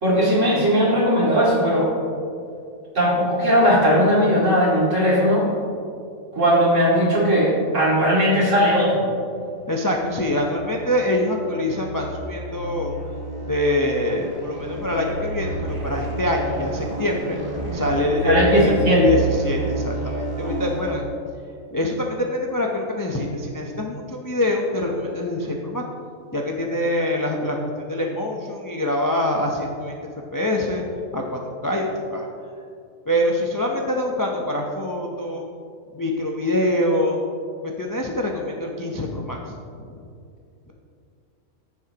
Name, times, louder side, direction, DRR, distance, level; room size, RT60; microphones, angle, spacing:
voice 1, 0.0-1.9 2.9-5.5 6.3-9.0 18.2-19.0, equal, 60° right, -6 dB, 2.9 m, -18 dB
sound 1, 9.6-21.0, right 2 dB, 25° right, 1.4 m, -30 dB
voice 2, 9.7-12.9 13.5-17.4 17.7-21.1 21.7-25.8 26.3-30.0 30.3-30.8 31.1-32.3 33.1-35.4 35.9-37.2 37.8-39.4, left 1 dB, 25° left, 0 dB, 0.4 m, -24 dB
14.5 x 7.1 x 2.9 m, 2.4 s
omnidirectional pair, 1.5 m